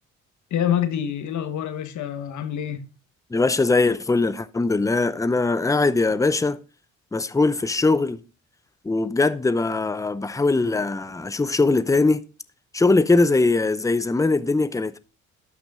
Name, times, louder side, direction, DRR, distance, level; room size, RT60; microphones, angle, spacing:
voice 1, 0.5-2.8, left 9 dB, 70° left, 1.4 m, -26 dB
voice 2, 3.3-6.6 7.1-8.2 8.8-12.2 12.7-15.0, left 3 dB, 10° left, 0.7 m, -21 dB
11.5 x 6.1 x 3.7 m
cardioid pair, 90°, 30 cm